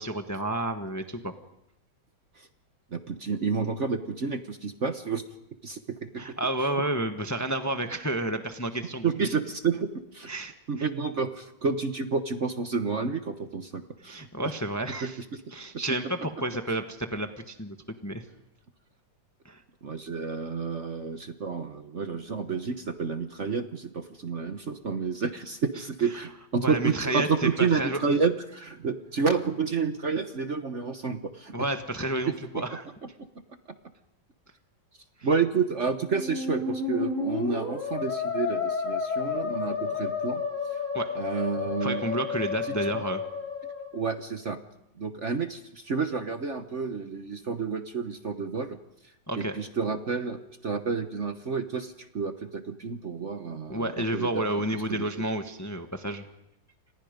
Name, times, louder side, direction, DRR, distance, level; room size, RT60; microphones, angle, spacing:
voice 1, 0.0-1.3 6.2-9.3 10.3-10.9 14.0-15.2 15.5-17.8 18.0-18.2 19.4-19.6 26.1-26.2 26.6-28.0 31.5-32.8 40.9-41.1 41.8-43.2 49.3-49.5 53.7-56.2, right 1 dB, 10° left, 6 dB, 1.2 m, -30 dB
voice 2, 2.9-5.2 5.6-6.4 9.0-10.3 10.7-14.3 15.0-15.1 19.8-31.5 32.5-32.6 35.2-40.4 40.7-40.8 41.1-42.0 42.9-43.0 43.9-44.6 45.0-48.8 49.4-54.5 54.9-55.1, right 5 dB, 45° right, 8 dB, 1.3 m, -30 dB
Musical instrument, 36.0-44.1, left 5 dB, 40° left, 4.9 m, -31 dB
30.0 x 27.0 x 5.3 m, 0.85 s
omnidirectional pair, 2.0 m